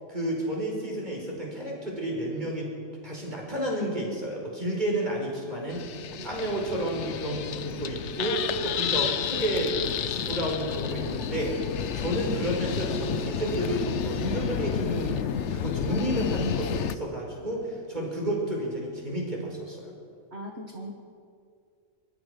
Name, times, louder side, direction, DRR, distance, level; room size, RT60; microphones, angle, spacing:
voice 1, 0.1-2.7 3.0-9.7 10.0-19.9, right 1 dB, 35° right, -2 dB, 5.2 m, -31 dB
sound 1, 5.7-17.0, left 8 dB, 60° left, 1.0 m, -31 dB
voice 2, 18.0-18.3 20.3-20.9, right 1 dB, 50° right, 0 dB, 2.0 m, -40 dB
24.5 x 21.0 x 5.2 m, 2.3 s
omnidirectional pair, 1.4 m